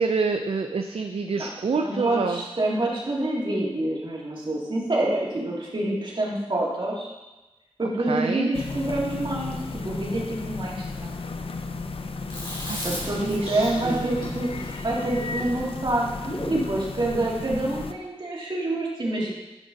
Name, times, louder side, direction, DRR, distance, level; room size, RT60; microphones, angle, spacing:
voice 1, 0.0-2.4 8.1-8.6 12.6-14.3, right 4 dB, 80° right, 6 dB, 0.4 m, -28 dB
voice 2, 1.7-7.1 7.8-11.1 12.8-14.5 14.8-16.1 16.5-19.3, right 1 dB, 55° right, -4 dB, 2.2 m, -27 dB
sound 1, 8.5-17.9, left 3 dB, 70° left, 0.5 m, -34 dB
Chewing mastication, 12.3-16.7, equal, 50° left, 3.1 m, -36 dB
10.5 x 5.2 x 3.9 m, 1.1 s
wide cardioid pair, 70°, 10 cm